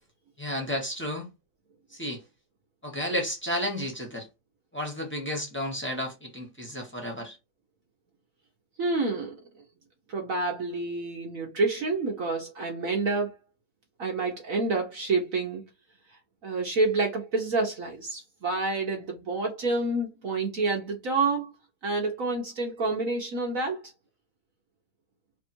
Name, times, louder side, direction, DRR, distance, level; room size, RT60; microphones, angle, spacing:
voice 1, 0.4-1.3 1.9-2.2 2.8-4.3 4.7-7.4, equal, 10° left, 0.9 m, -32 dB
voice 2, 8.8-9.4 10.1-13.3 14.0-15.7 16.4-21.5 21.8-23.8, right 3 dB, 55° right, 1.0 m, -28 dB
3.5 x 2.5 x 4.3 m
omnidirectional pair, 2.1 m